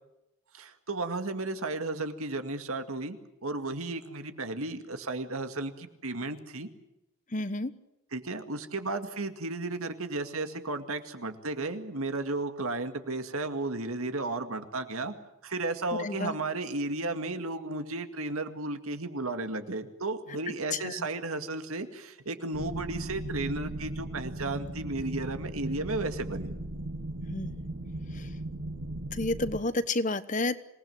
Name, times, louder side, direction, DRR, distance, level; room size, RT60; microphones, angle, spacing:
voice 1, 0.5-3.2 3.4-6.7 8.1-15.1 15.4-26.5, right 2 dB, 80° right, 8 dB, 2.2 m, -34 dB
voice 2, 7.3-7.7 16.0-16.3 20.7-21.1 27.3-27.6 28.1-28.3 29.1-30.6, left 2 dB, 35° left, 14 dB, 1.0 m, -30 dB
sound 1, 22.5-29.6, right 1 dB, 65° right, 2.4 m, -37 dB
26.5 x 19.0 x 7.8 m, 0.90 s
head